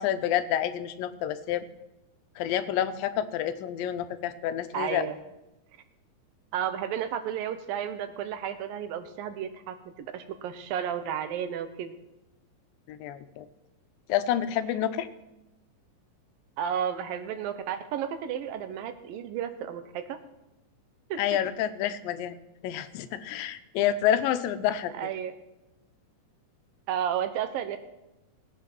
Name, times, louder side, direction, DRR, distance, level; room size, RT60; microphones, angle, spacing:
voice 1, 0.0-1.7 2.4-5.1 12.9-13.5 14.1-15.1 21.2-22.4 22.6-25.1, left 10 dB, 80° left, 12 dB, 2.5 m, -28 dB
voice 2, 4.7-5.2 6.5-12.0 16.6-20.2 21.1-21.2 25.0-25.3 26.9-27.8, right 9 dB, 80° right, 10 dB, 2.7 m, -32 dB
19.0 x 8.7 x 6.1 m, 0.96 s
omnidirectional pair, 4.0 m